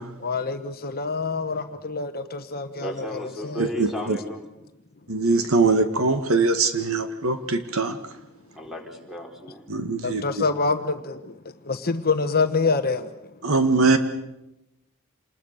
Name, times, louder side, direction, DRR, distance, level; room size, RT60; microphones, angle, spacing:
voice 1, 0.2-3.7 10.0-11.3 11.7-13.1, left 4 dB, 45° left, 9 dB, 1.2 m, -26 dB
voice 2, 2.8-4.4 8.5-9.7, equal, ahead, 1 dB, 4.3 m, -34 dB
voice 3, 3.6-4.2 5.1-8.0 9.7-10.2 13.4-14.0, right 3 dB, 70° right, 8 dB, 1.8 m, -22 dB
28.0 x 20.5 x 6.8 m, 0.93 s
head